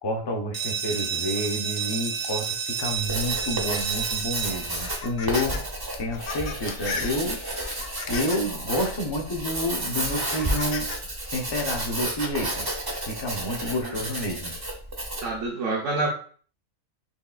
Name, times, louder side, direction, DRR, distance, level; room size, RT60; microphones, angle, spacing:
voice 1, 0.0-5.7 6.0-7.4 8.1-10.9 11.3-12.7 13.1-14.5, left 1 dB, 35° left, 2 dB, 0.4 m, -29 dB
sound 1, 0.5-6.0, right 7 dB, 50° right, 0.9 m, -31 dB
Writing, 2.9-15.4, right 1 dB, 25° right, 0.5 m, -31 dB
sound 2, 4.7-5.6 5.9-8.5 9.1-9.3 10.1-11.0, left 5 dB, 80° left, 1.0 m, -37 dB
voice 2, 15.2-16.1, right 3 dB, 70° right, -3 dB, 1.1 m, -27 dB
4.4 x 3.2 x 2.3 m, 0.43 s
omnidirectional pair, 1.4 m